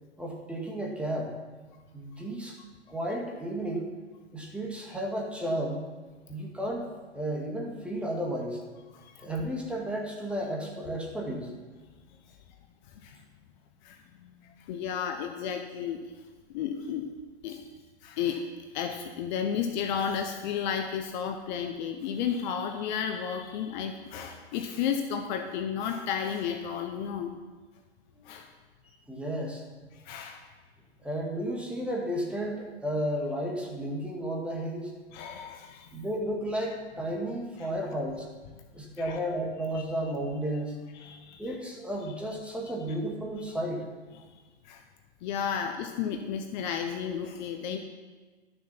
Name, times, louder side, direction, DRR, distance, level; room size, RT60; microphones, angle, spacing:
voice 1, 0.2-1.3 1.9-2.6 2.9-3.9 4.3-5.9 6.3-6.9 7.1-8.6 9.2-11.5 28.2-28.3 29.1-29.6 31.0-34.9 35.9-38.2 38.7-40.8 41.4-43.9, right 1 dB, 5° right, -1 dB, 2.1 m, -33 dB
voice 2, 13.8-16.0 16.5-17.1 17.4-17.7 18.0-18.5 18.7-27.3 28.2-28.5 29.9-30.4 35.1-35.9 39.0-39.2 39.8-39.9 40.9-41.5 44.1-44.2 44.6-44.8 45.2-47.8, left 7 dB, 40° left, 5 dB, 1.1 m, -33 dB
12.5 x 6.8 x 5.9 m, 1.4 s
hypercardioid pair, 115°, 34 cm